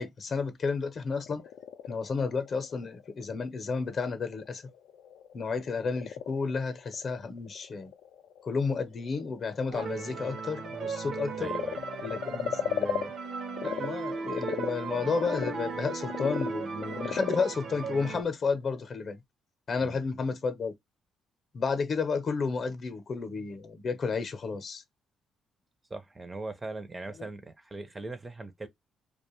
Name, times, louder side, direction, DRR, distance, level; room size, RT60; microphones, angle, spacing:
voice 1, 0.0-1.4 1.9-4.7 5.3-7.9 8.4-11.5 12.0-13.1 13.6-19.2 19.7-20.7 21.5-24.8 27.2-27.3, left 4 dB, 50° left, 0.6 m, -32 dB
Frog, 1.1-13.9 14.2-18.9, left 9 dB, 85° left, 0.3 m, -38 dB
sound 1, 9.7-18.2, right 5 dB, 70° right, 0.6 m, -37 dB
voice 2, 11.4-11.8 19.8-20.0 25.9-28.7, right 2 dB, 20° right, 0.5 m, -40 dB
2.4 x 2.1 x 3.0 m
cardioid pair, 90°, 0 cm